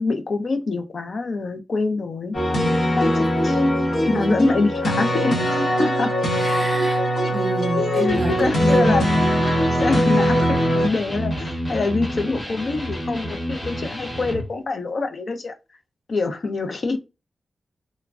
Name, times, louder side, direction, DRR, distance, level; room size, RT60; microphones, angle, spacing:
voice 1, 0.0-2.4 3.0-3.6 4.1-6.2 7.7-9.0 9.7-15.5 16.1-17.0, left 3 dB, 55° left, 0.5 m, -25 dB
sound 1, 2.3-10.9, equal, 85° left, 1.0 m, -21 dB
voice 2, 6.4-9.0, right 1 dB, 35° right, 0.5 m, -28 dB
Electric guitar, 8.1-14.5, equal, 30° left, 1.1 m, -29 dB
3.0 x 2.2 x 2.4 m
wide cardioid pair, 95°, 0 cm